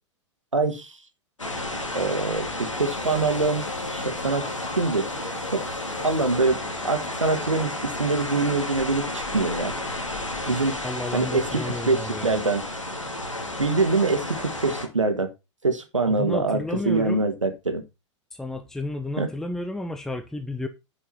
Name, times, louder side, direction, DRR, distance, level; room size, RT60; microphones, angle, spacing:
voice 1, 0.5-0.9 1.9-4.5 4.7-5.1 5.5-5.6 6.0-6.6 6.8-9.7 10.5-10.8 11.1-12.6 13.6-15.3 15.6-17.8 19.2-19.3, right 3 dB, 85° right, 1.5 m, -24 dB
sound 1, 1.4-14.9, left 1 dB, 85° left, 2.3 m, -32 dB
sound 2, 2.7-7.5, left 4 dB, 45° left, 3.3 m, -43 dB
voice 2, 10.8-12.4 16.1-17.2 18.3-20.7, left 1 dB, 5° left, 0.9 m, -32 dB
11.0 x 6.1 x 4.2 m
figure-of-eight pair, 95°, 16 cm